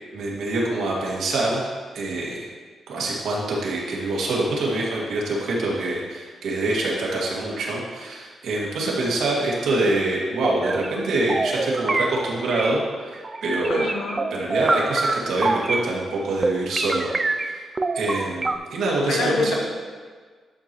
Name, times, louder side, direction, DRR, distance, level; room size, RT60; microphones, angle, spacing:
voice 1, 0.1-1.6 1.9-2.5 2.9-13.8 14.3-17.6 17.9-19.5, right 2 dB, 80° right, -4 dB, 2.1 m, -25 dB
sound 1, 10.4-12.8 13.1-15.9 16.4-18.6, right 3 dB, 25° right, 0.4 m, -26 dB
voice 2, 13.7-14.3 19.1-19.5, left 4 dB, 70° left, 3 dB, 1.0 m, -26 dB
11.0 x 6.8 x 3.1 m, 1.5 s
cardioid pair, 130°, 0 cm